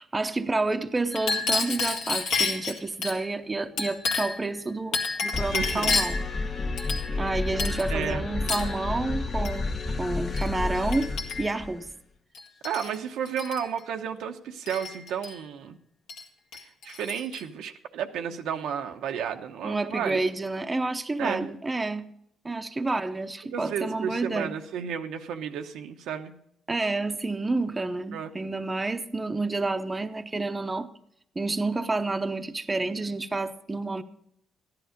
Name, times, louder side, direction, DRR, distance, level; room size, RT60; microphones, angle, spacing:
voice 1, 0.0-6.2 7.2-9.7 10.0-11.1 11.4-11.9 19.6-22.1 22.4-24.5 26.7-30.9 31.4-34.0, right 3 dB, 20° right, 7 dB, 0.8 m, -29 dB
Chink clink, 1.1-3.2 3.8-4.4 4.9-6.3 6.8-7.3 7.6-7.9 8.5-8.8 9.4-9.6 10.4-10.5 10.9-11.6 12.3-13.0 13.3-13.6 14.7-15.3 16.1-16.2 16.5-17.4, left 4 dB, 85° left, 1.9 m, -30 dB
sound 1, 5.3-11.9, left 3 dB, 45° left, 1.5 m, -31 dB
voice 2, 5.5-5.9 7.1-7.3 7.9-8.3 12.6-15.8 16.8-20.2 21.2-21.5 23.4-26.3 28.1-28.3, right 8 dB, 85° right, 5 dB, 1.0 m, -32 dB
14.0 x 11.0 x 5.1 m, 0.73 s
cardioid pair, 90°, 0 cm